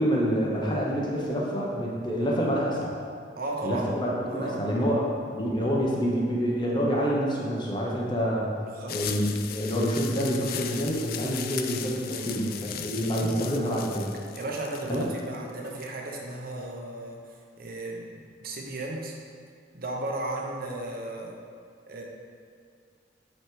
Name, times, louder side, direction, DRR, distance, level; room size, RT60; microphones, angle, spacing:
voice 1, 0.0-2.9 3.6-8.5 8.9-14.1 14.9-15.1, equal, 25° left, -4 dB, 1.0 m, -27 dB
voice 2, 3.4-3.9 4.3-5.0 8.6-9.0 12.1-12.9 13.2-13.5 14.3-17.2 17.6-19.1 19.7-21.4 21.9-22.0, right 2 dB, 55° right, -1 dB, 0.9 m, -35 dB
sound 1, 8.9-15.9, left 9 dB, 55° left, 0.3 m, -38 dB
8.1 x 3.3 x 4.6 m, 2.1 s
head